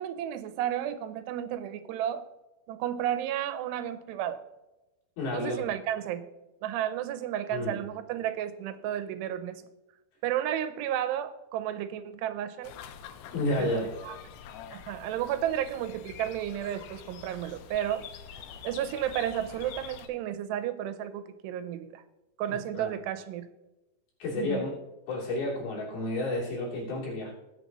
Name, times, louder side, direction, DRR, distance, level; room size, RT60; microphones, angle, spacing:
voice 1, 0.0-2.3 2.7-4.4 5.3-6.3 6.6-9.6 10.2-12.7 13.6-13.7 14.1-14.2 14.7-18.0 18.6-22.0 22.4-23.5 24.4-24.7, right 11 dB, 85° right, 12 dB, 2.8 m, -32 dB
voice 2, 5.2-5.6 7.5-7.8 13.3-13.9 22.5-22.9 24.2-24.7 25.1-27.3, left 2 dB, 65° left, -4 dB, 5.0 m, -31 dB
sound 1, 12.6-20.1, left 8 dB, 90° left, 2.9 m, -46 dB
19.5 x 6.6 x 3.0 m, 1.0 s
omnidirectional pair, 4.8 m